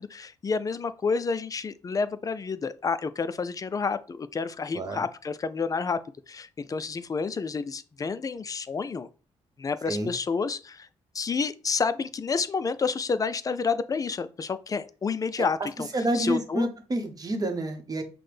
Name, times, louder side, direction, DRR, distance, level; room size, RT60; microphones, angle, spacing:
voice 1, 0.0-6.0 6.3-9.1 9.6-10.9 11.1-15.9 16.1-16.7, left 5 dB, 30° left, 0.3 m, -29 dB
voice 2, 15.9-18.0, right 1 dB, 35° right, 0.9 m, -28 dB
5.8 x 2.1 x 3.2 m
cardioid pair, 80°, 11 cm